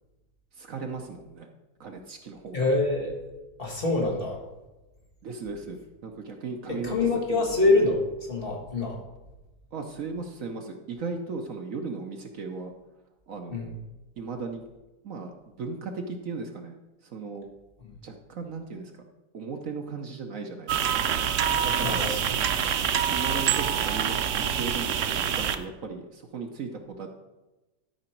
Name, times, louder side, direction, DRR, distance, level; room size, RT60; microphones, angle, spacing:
voice 1, 0.5-1.5 1.8-2.6 5.2-7.6 9.7-12.7 13.3-13.7 14.2-14.6 15.0-16.8 17.0-17.5 18.0-19.0 19.3-21.1 21.6-22.1 23.1-27.1, right 4 dB, 55° right, 4 dB, 1.0 m, -37 dB
voice 2, 2.5-3.1 3.6-4.4 6.7-9.0 13.5-13.7 21.8-22.2, left 2 dB, 30° left, -2 dB, 1.8 m, -25 dB
sound 1, 20.7-25.6, right 8 dB, 90° right, 0.6 m, -26 dB
12.5 x 5.0 x 4.5 m, 1.1 s
omnidirectional pair, 2.0 m